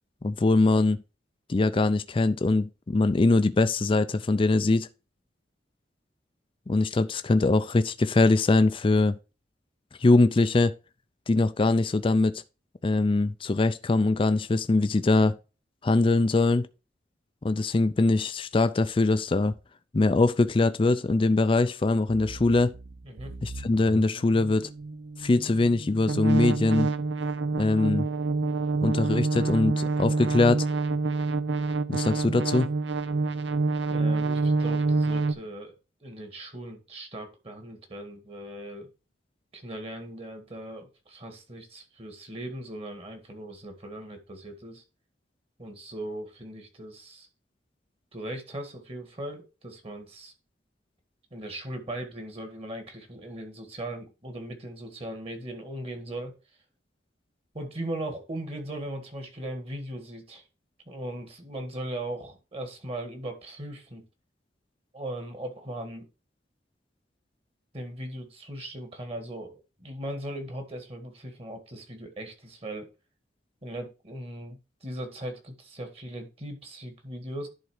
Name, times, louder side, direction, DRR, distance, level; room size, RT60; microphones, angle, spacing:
voice 1, 0.2-1.0 1.5-4.9 6.7-9.2 10.0-10.7 11.3-12.4 12.8-15.4 15.8-16.7 17.4-19.5 19.9-22.7 23.4-24.7 25.2-26.9 27.6-28.1 28.8-30.7 31.9-32.7, left 2 dB, 30° left, 0.4 m, -22 dB
sound 1, 22.1-35.3, right 3 dB, 70° right, 0.6 m, -28 dB
voice 2, 33.9-35.7 36.0-38.9 39.5-44.8 45.6-47.3 48.1-50.3 51.3-56.3 57.5-60.4 60.9-64.0 64.9-66.0 67.7-72.9 73.6-77.5, right 1 dB, 35° right, 1.8 m, -38 dB
11.0 x 3.7 x 4.9 m
head